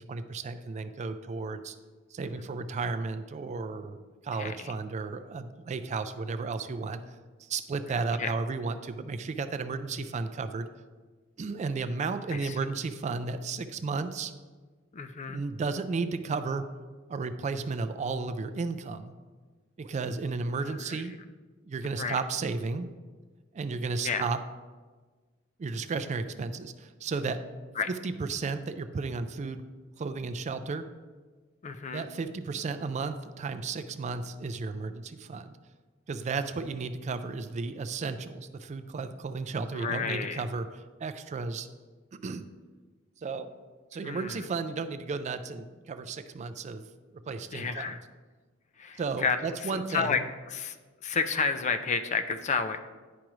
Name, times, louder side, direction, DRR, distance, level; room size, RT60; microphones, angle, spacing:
voice 1, 0.0-1.8 2.1-4.0 4.2-7.0 7.4-10.7 11.4-14.3 15.3-16.7 17.1-19.1 19.8-21.1 21.6-22.9 23.5-24.4 25.6-27.4 27.9-29.6 30.0-30.9 31.9-35.5 36.1-41.7 42.2-42.5 43.2-43.5 43.9-46.9 47.1-48.0 49.0-50.3, right 4 dB, 35° right, 10 dB, 0.3 m, -33 dB
voice 2, 7.9-8.3 10.0-10.1 12.3-12.5 14.9-15.4 20.6-21.0 21.9-22.2 24.0-24.2 27.8-27.9 31.6-32.1 39.7-40.4 44.0-44.4 47.5-48.0 48.8-49.4 49.6-50.2 50.5-50.8 51.0-52.8, left 5 dB, 35° left, 9 dB, 0.4 m, -31 dB
10.5 x 4.9 x 3.1 m, 1.4 s
head